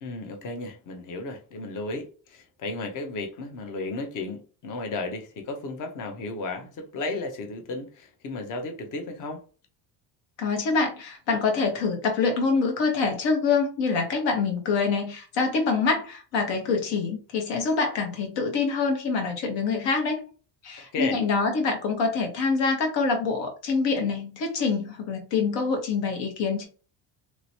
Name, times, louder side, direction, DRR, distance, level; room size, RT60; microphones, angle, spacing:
voice 1, 0.0-9.4 20.9-21.2, left 3 dB, 45° left, 0.7 m, -34 dB
voice 2, 10.4-20.2 20.6-26.7, left 4 dB, 85° left, 1.3 m, -25 dB
3.0 x 2.9 x 2.8 m
cardioid pair, 170°, 42 cm